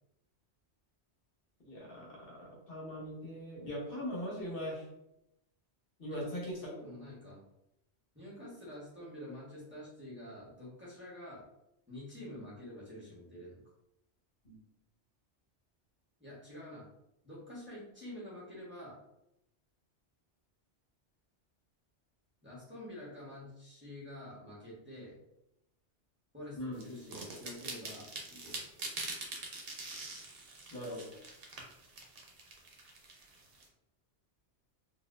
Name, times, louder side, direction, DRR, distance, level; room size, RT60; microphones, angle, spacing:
voice 1, 1.6-4.9 6.0-6.7 14.4-14.6 26.6-26.8 30.7-31.1, equal, 55° left, -4 dB, 1.1 m, -40 dB
voice 2, 6.6-7.4 8.1-11.4 11.9-13.6 16.2-16.8 17.2-19.0 22.4-25.1 26.3-28.6, left 1 dB, 10° right, -8 dB, 1.1 m, -48 dB
sound 1, 26.8-33.6, right 3 dB, 60° right, 0.9 m, -44 dB
4.1 x 2.5 x 2.5 m, 0.84 s
omnidirectional pair, 1.2 m